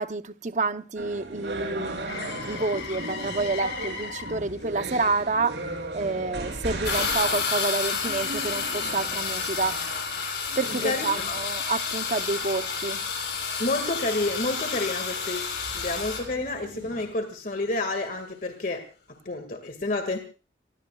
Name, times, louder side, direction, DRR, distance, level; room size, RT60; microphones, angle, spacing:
voice 1, 0.0-5.6 5.9-9.8 10.6-13.0, right 3 dB, 40° right, 0.8 m, -29 dB
sound 1, 1.0-17.0, right 2 dB, 80° right, 7.3 m, -38 dB
Motor vehicle (road), 2.1-10.0 14.3-14.5, left 5 dB, 85° left, 3.8 m, -42 dB
sound 2, 6.8-16.2, left 5 dB, 65° left, 7.4 m, -30 dB
voice 2, 10.8-11.4 13.6-18.9 19.3-20.2, left 2 dB, 50° left, 2.0 m, -29 dB
28.0 x 20.5 x 2.4 m
head